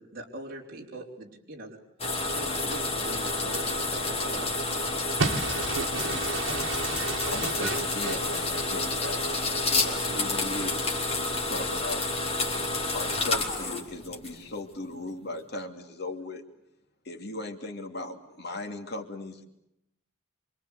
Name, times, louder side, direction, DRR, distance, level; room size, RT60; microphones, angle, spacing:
voice 1, 0.0-1.8 2.3-4.6, right 2 dB, 45° right, -2 dB, 3.8 m, -42 dB
sound 1, 2.0-14.6, left 2 dB, 30° left, 4.0 m, -29 dB
voice 2, 5.2-8.4, right 4 dB, 70° right, 1 dB, 2.3 m, -32 dB
voice 3, 7.0-9.2 9.7-11.0 11.2-12.1 12.9-16.4 17.0-19.5, left 2 dB, 55° left, 4 dB, 2.7 m, -37 dB
27.0 x 25.5 x 8.3 m, 0.79 s
head